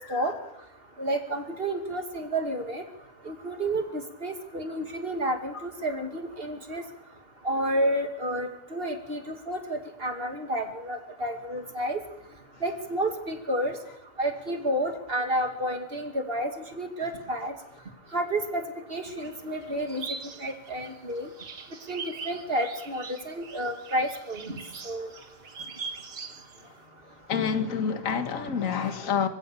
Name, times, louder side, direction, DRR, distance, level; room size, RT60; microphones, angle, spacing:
voice 1, 1.0-2.8 3.3-6.8 7.4-12.0 12.6-13.7 14.2-16.5 16.8-17.5 18.1-18.6 18.9-20.0 20.4-21.3 21.9-24.5 24.8-25.1 28.5-28.6, right 1 dB, 30° right, 5 dB, 2.6 m, -30 dB
sound 1, 19.2-26.7, right 5 dB, 65° right, 2.2 m, -42 dB
voice 2, 27.3-29.3, left 7 dB, 50° left, 9 dB, 1.9 m, -28 dB
26.0 x 16.0 x 7.0 m, 0.86 s
omnidirectional pair, 1.9 m